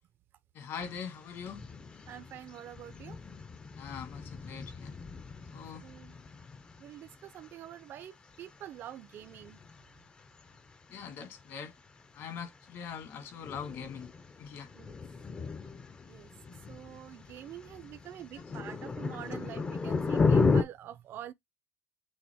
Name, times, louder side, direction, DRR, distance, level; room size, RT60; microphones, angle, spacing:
voice 1, 0.5-1.7 3.8-4.9 5.5-5.8 10.9-11.8 12.1-14.1 14.4-14.7, left 7 dB, 50° left, 1.6 m, -42 dB
sound 1, 0.8-20.6, left 4 dB, 20° left, 0.6 m, -35 dB
voice 2, 2.1-3.2 5.8-6.1 6.8-9.6 14.7-14.9 16.1-16.3 16.7-21.3, right 11 dB, 45° right, 0.5 m, -46 dB
6.3 x 2.4 x 3.5 m
cardioid pair, 155°, 5 cm